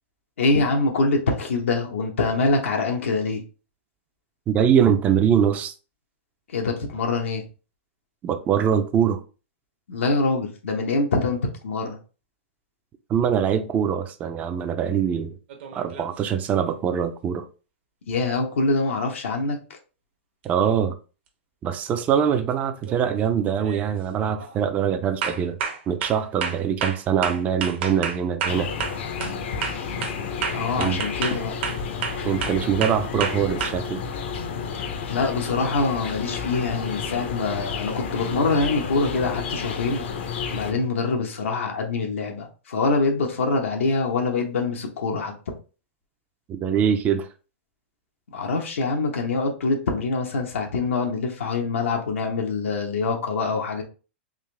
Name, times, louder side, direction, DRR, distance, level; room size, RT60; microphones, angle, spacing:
voice 1, 0.4-3.4 6.5-7.4 9.9-12.0 18.1-19.6 30.5-31.5 35.1-40.1 40.5-45.3 48.3-53.8, left 3 dB, 90° left, 0.9 m, -24 dB
voice 2, 4.5-5.7 8.2-9.2 13.1-15.3 15.7-17.5 20.4-21.0 21.6-25.6 25.9-28.7 30.8-31.0 32.2-34.0 46.5-47.3, right 8 dB, 25° right, 0.4 m, -23 dB
sound 1, 15.5-16.2 20.4-20.5 22.1-22.4 22.8-23.1 23.6-24.0 24.4-24.6 25.2-29.4 29.6-33.7, right 6 dB, 60° right, 0.9 m, -30 dB
sound 2, 28.5-40.7, left 6 dB, 65° left, 0.7 m, -31 dB
3.7 x 2.5 x 3.3 m
hypercardioid pair, 140°, 7 cm